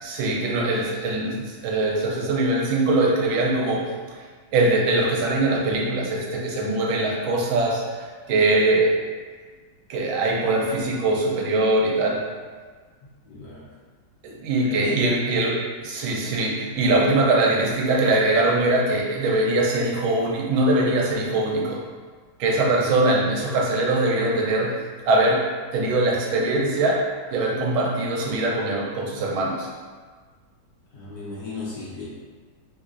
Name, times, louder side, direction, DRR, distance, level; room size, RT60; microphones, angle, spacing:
voice 1, 0.0-3.9 4.5-8.9 9.9-12.2 14.2-21.8 22.4-24.8 25.0-25.4 25.7-27.0 27.3-29.7, right 2 dB, 75° right, -2 dB, 1.3 m, -22 dB
voice 2, 13.3-13.6 14.7-15.1 30.9-32.0, left 3 dB, 65° left, -8 dB, 1.4 m, -35 dB
3.5 x 2.9 x 2.5 m, 1.5 s
omnidirectional pair, 2.2 m